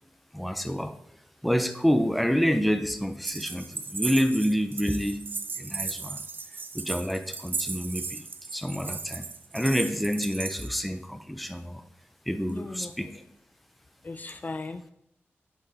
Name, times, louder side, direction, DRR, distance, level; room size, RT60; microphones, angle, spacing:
voice 1, 0.3-1.0 1.4-5.2 5.6-6.2 6.7-8.2 8.5-9.3 9.5-11.8 12.3-13.1, equal, ahead, 8 dB, 0.6 m, -27 dB
sound 1, 3.2-10.7, right 4 dB, 50° right, 0.6 m, -36 dB
voice 2, 12.4-12.9 14.0-14.9, left 3 dB, 40° left, 10 dB, 0.6 m, -37 dB
8.3 x 7.9 x 3.9 m, 0.76 s
wide cardioid pair, 115°, 4 cm